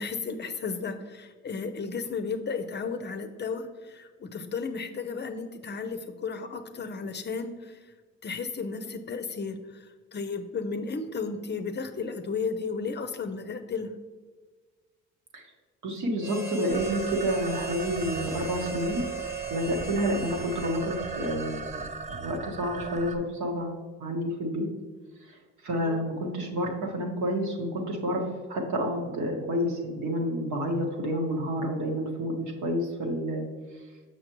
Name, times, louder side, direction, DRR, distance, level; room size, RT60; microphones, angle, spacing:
voice 1, 0.0-3.7 3.9-7.7 8.2-9.6 10.1-13.9 25.8-26.0, left 4 dB, 35° left, 8 dB, 0.6 m, -33 dB
voice 2, 15.8-19.0 19.5-21.9 22.2-24.7 25.6-33.4, equal, 70° right, 0 dB, 1.4 m, -29 dB
Harmonica, 16.2-22.0, right 5 dB, 10° right, 0.9 m, -37 dB
sound 1, 16.7-23.2, right 4 dB, 25° right, 0.4 m, -39 dB
6.4 x 6.2 x 3.0 m, 1.4 s
cardioid pair, 90°, 30 cm